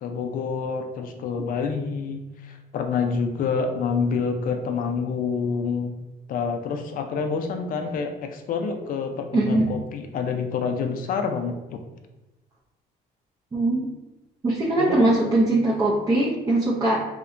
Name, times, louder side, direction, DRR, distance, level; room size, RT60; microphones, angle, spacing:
voice 1, 0.0-5.9 6.3-11.8 14.8-15.1, left 5 dB, 55° left, 5 dB, 0.4 m, -27 dB
voice 2, 9.3-9.7 13.5-13.9 14.4-17.0, right 2 dB, 20° right, -6 dB, 0.4 m, -21 dB
2.7 x 2.1 x 2.5 m, 1.0 s
cardioid pair, 110°, 17 cm